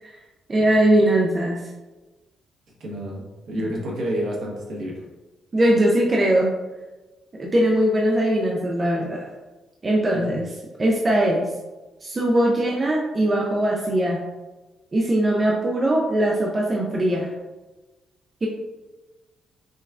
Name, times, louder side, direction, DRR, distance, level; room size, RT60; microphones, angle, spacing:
voice 1, 0.5-1.6 5.5-6.5 7.4-9.2 9.8-10.5 10.8-11.5 12.0-14.2 14.9-17.3 18.4-18.5, right 1 dB, 25° right, -2 dB, 0.4 m, -20 dB
voice 2, 2.8-5.0 10.1-10.2, equal, 60° right, -2 dB, 0.9 m, -29 dB
5.2 x 2.3 x 2.3 m, 1.2 s
cardioid pair, 150°, 0 cm